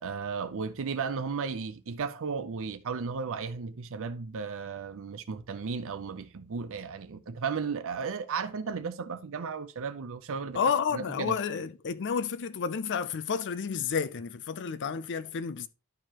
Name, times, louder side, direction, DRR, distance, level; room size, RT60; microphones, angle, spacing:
voice 1, 0.0-10.6 10.9-11.4, right 5 dB, 65° right, 0.5 m, -34 dB
voice 2, 10.5-15.7, left 6 dB, 55° left, 0.5 m, -30 dB
12.0 x 4.6 x 2.9 m
head